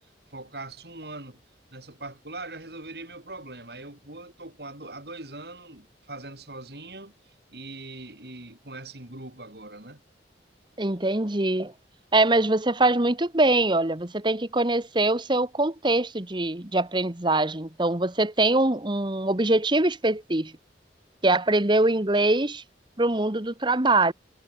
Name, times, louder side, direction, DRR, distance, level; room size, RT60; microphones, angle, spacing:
voice 1, 0.3-1.4 1.7-10.0, right 2 dB, 60° right, 5.1 m, -41 dB
voice 2, 10.8-11.7 12.1-20.5 21.2-22.6 23.0-24.1, right 2 dB, 25° right, 1.4 m, -23 dB
head